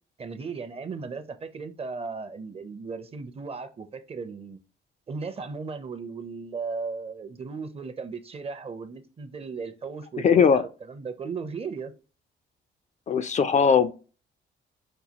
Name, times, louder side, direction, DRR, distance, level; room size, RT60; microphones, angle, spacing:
voice 1, 0.2-4.6 5.1-11.9, right 4 dB, 30° right, 0.5 m, -36 dB
voice 2, 10.2-10.6 13.1-13.9, left 6 dB, 35° left, 0.4 m, -19 dB
5.4 x 2.3 x 2.8 m
cardioid pair, 90°, 20 cm